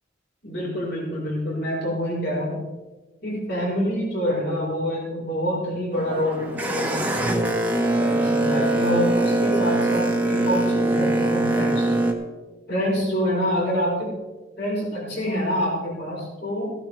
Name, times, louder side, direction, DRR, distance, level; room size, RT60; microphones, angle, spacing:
voice 1, 0.4-2.7 3.2-7.5 8.0-11.9 12.7-14.2 14.6-16.7, equal, 60° left, -4 dB, 4.9 m, -26 dB
Boat Water vehicle, 5.9-12.1, right 2 dB, 10° right, 1.3 m, -22 dB
15.5 x 13.0 x 3.4 m, 1.3 s
head